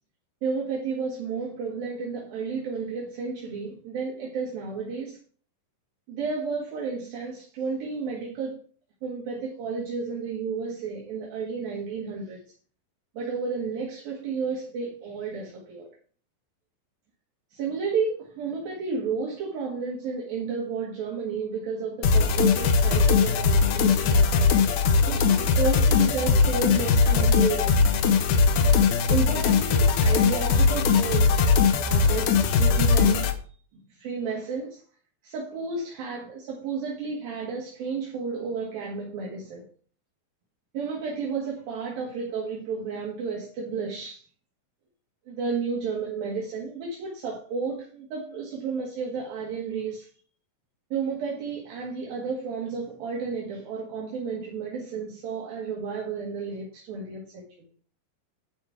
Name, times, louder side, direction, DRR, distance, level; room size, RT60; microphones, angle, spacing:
voice 1, 0.4-5.2 6.1-8.6 9.0-12.4 13.2-15.9 17.5-24.5 25.1-27.9 29.1-31.4 31.8-33.4 33.9-34.8 35.2-39.7 40.7-44.2 45.3-50.1 50.9-57.5, right 5 dB, 70° right, -2 dB, 3.7 m, -32 dB
sound 1, 22.0-33.3, left 5 dB, 65° left, 2.2 m, -20 dB
12.0 x 5.3 x 5.9 m, 0.43 s
omnidirectional pair, 4.4 m